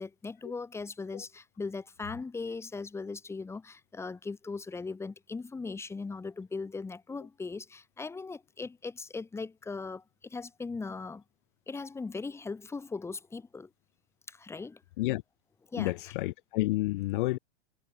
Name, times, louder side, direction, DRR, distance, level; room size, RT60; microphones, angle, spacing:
voice 1, 0.0-11.2 11.7-13.7 14.3-14.8 15.7-16.0, left 4 dB, 10° left, 3.5 m, -39 dB
voice 2, 15.8-17.4, left 19 dB, 50° left, 1.5 m, -30 dB
supercardioid pair, 150°, 32 cm